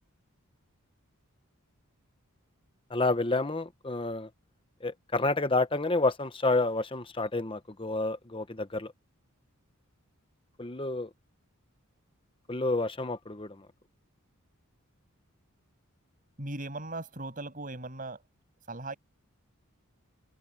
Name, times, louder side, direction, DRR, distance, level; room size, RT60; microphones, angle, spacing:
voice 1, 2.9-4.3 4.8-8.9 10.6-11.1 12.5-13.6, left 2 dB, 25° left, 1.0 m, -29 dB
voice 2, 16.4-18.2 18.7-19.0, right 2 dB, 40° right, 7.0 m, -38 dB
head